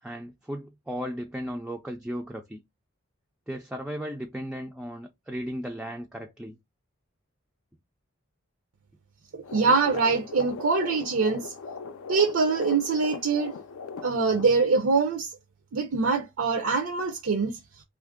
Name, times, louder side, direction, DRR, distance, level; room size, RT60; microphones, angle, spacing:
voice 1, 0.0-2.6 3.5-6.6, equal, 5° right, 0.3 m, -35 dB
sound 1, 9.4-14.5, left 5 dB, 70° left, 0.4 m, -39 dB
voice 2, 9.5-11.5 12.1-13.5 14.0-15.3 15.7-17.5, right 4 dB, 70° right, 0.5 m, -24 dB
2.8 x 2.5 x 3.5 m
head